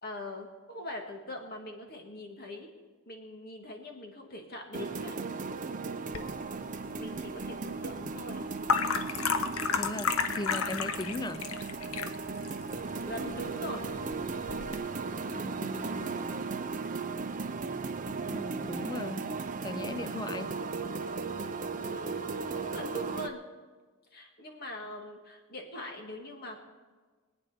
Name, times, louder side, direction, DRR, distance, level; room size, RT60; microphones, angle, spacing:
voice 1, 0.0-2.7 3.1-5.1 7.0-8.5 13.0-13.9 21.8-23.4 24.1-26.6, left 1 dB, 45° left, 3 dB, 1.9 m, -42 dB
sound 1, 4.7-23.3, right 4 dB, 35° right, 0.6 m, -36 dB
sound 2, 6.1-14.8, left 6 dB, 80° left, 0.8 m, -34 dB
voice 2, 9.8-11.4 15.3-16.2 18.2-19.3 19.6-20.5, left 2 dB, 20° left, 14 dB, 0.4 m, -38 dB
23.0 x 9.1 x 4.3 m, 1.4 s
head